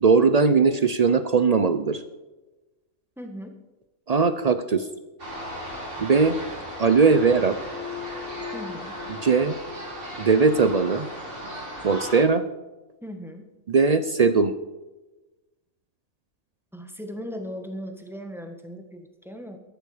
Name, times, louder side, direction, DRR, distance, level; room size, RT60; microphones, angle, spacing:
voice 1, 0.0-2.0 4.1-4.9 6.0-6.4 6.8-7.6 9.1-9.6 10.2-11.1 11.8-12.4 13.7-14.5, right 4 dB, 60° right, 11 dB, 0.4 m, -19 dB
voice 2, 3.2-3.6 8.5-8.9 13.0-13.5 16.7-19.6, equal, ahead, 4 dB, 1.4 m, -38 dB
sound 1, 5.2-12.2, left 1 dB, 40° right, 3.4 m, -36 dB
13.5 x 11.0 x 5.0 m, 1.1 s
omnidirectional pair, 1.4 m